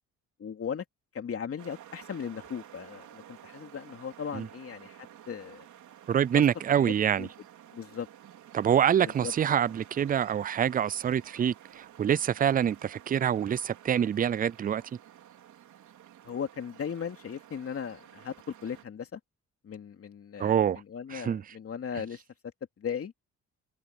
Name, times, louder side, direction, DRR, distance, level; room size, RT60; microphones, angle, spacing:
voice 1, 0.4-0.8 1.1-5.7 6.3-6.4 6.8-6.9 7.2-7.3 7.7-8.1 9.0-9.3 16.2-18.3 18.6-19.2 19.6-22.2 22.8-23.1, left 7 dB, 50° left, 2.8 m, -37 dB
sound 1, 1.6-18.8, right 11 dB, 75° right, 3.9 m, -52 dB
voice 2, 6.1-7.3 8.5-14.8 20.4-20.8 21.1-21.4, right 9 dB, 30° right, 0.4 m, -26 dB
cardioid pair, 90°, 30 cm